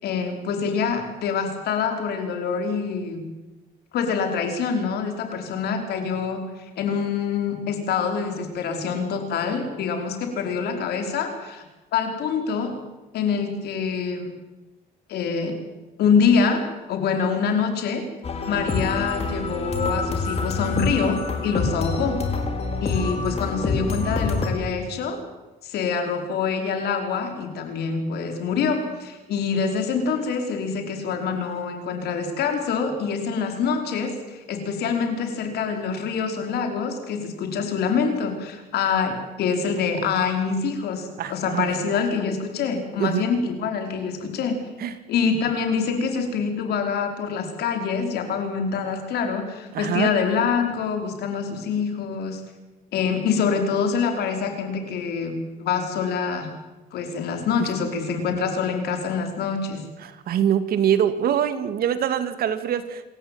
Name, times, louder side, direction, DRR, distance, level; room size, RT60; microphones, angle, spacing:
voice 1, 0.0-3.2 3.9-6.4 6.8-11.6 11.9-12.7 13.1-14.3 15.1-15.5 16.0-16.6 16.9-18.0 18.5-22.2 22.8-25.2 25.6-44.6 45.1-52.4 52.9-55.3 55.6-56.5 56.9-59.8, left 6 dB, 70° left, 5 dB, 5.1 m, -25 dB
sound 1, 18.2-24.5, left 3 dB, 40° left, 4.5 m, -26 dB
voice 2, 41.2-41.7 43.0-43.2 44.8-45.0 49.7-50.1 60.0-63.0, right 9 dB, 65° right, 11 dB, 2.4 m, -24 dB
27.0 x 14.5 x 9.5 m, 1.1 s
cardioid pair, 110°, 17 cm